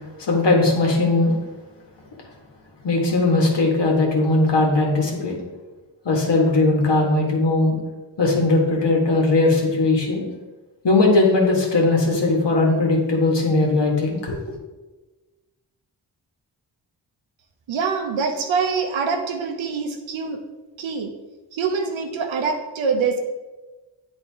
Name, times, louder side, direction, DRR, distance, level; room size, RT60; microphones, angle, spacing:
voice 1, 0.2-1.3 2.8-5.3 6.1-7.8 8.2-10.3 10.8-14.4, left 2 dB, 65° left, -1 dB, 1.8 m, -19 dB
voice 2, 17.7-20.4 20.8-21.1 21.5-23.2, right 5 dB, 90° right, 4 dB, 0.9 m, -24 dB
8.8 x 3.7 x 3.5 m, 1.2 s
cardioid pair, 45°, 46 cm